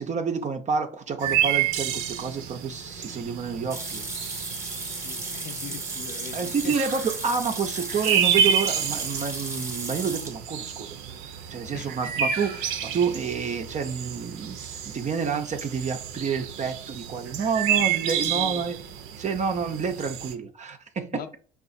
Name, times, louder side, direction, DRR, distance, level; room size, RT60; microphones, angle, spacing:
voice 1, 0.0-4.0 6.3-11.0 11.5-14.6 14.9-18.8 19.2-21.1, right 5 dB, 35° right, 0.5 m, -29 dB
sound 1, 1.2-20.3, right 8 dB, 75° right, 0.6 m, -30 dB
sound 2, 3.7-10.4, right 2 dB, 15° right, 0.9 m, -35 dB
voice 2, 4.9-6.7 11.7-12.1 17.9-18.7 21.1-21.4, left 8 dB, 45° left, 0.6 m, -41 dB
4.7 x 2.4 x 2.6 m
supercardioid pair, 85°, 21 cm